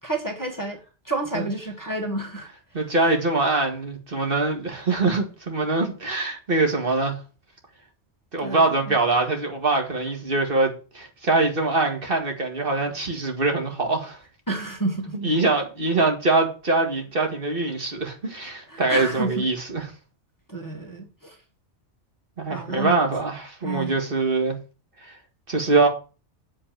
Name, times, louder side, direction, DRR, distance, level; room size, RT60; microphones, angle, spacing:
voice 1, 0.0-2.5 2.9-3.0 8.4-9.0 14.5-15.3 18.7-19.5 20.5-21.4 22.5-23.0 23.6-24.0, right 2 dB, 15° left, 1.6 m, -30 dB
voice 2, 2.7-7.2 8.3-14.2 15.1-19.8 22.4-24.6 25.0-25.1 25.5-25.9, right 3 dB, 50° right, 2.2 m, -23 dB
7.7 x 5.4 x 7.5 m
omnidirectional pair, 1.2 m